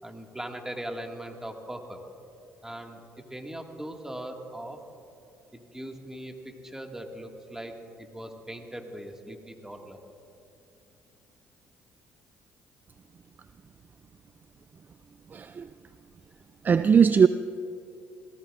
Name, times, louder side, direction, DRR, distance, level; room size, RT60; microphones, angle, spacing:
voice 1, 0.0-2.0 2.6-3.0 3.3-4.8 5.5-10.0, right 1 dB, 10° right, 2 dB, 1.8 m, -40 dB
voice 2, 15.3-15.7 16.6-17.3, right 6 dB, 35° right, 13 dB, 0.3 m, -19 dB
27.0 x 17.5 x 2.4 m, 2.7 s
supercardioid pair, 75°, 5 cm